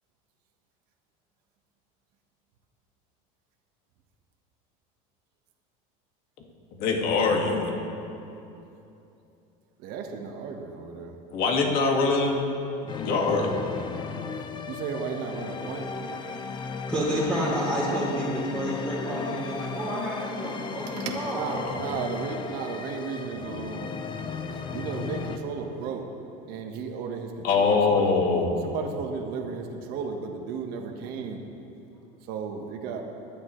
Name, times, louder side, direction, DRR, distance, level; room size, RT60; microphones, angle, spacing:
voice 1, 6.8-7.7 11.3-12.5 13.0-13.6 21.6-21.8 27.4-28.5, left 4 dB, 55° left, 1 dB, 2.0 m, -23 dB
voice 2, 9.8-11.1 14.7-15.9 20.9-23.9 24.5-26.0 26.5-28.1 28.6-31.4 32.2-33.0, right 5 dB, 60° right, 2 dB, 1.4 m, -34 dB
sound 1, 12.9-25.4, left 5 dB, 25° left, 0.7 m, -36 dB
voice 3, 16.9-21.5, equal, 5° left, -8 dB, 3.4 m, -29 dB
21.5 x 11.0 x 3.2 m, 2.9 s
supercardioid pair, 135°, 18 cm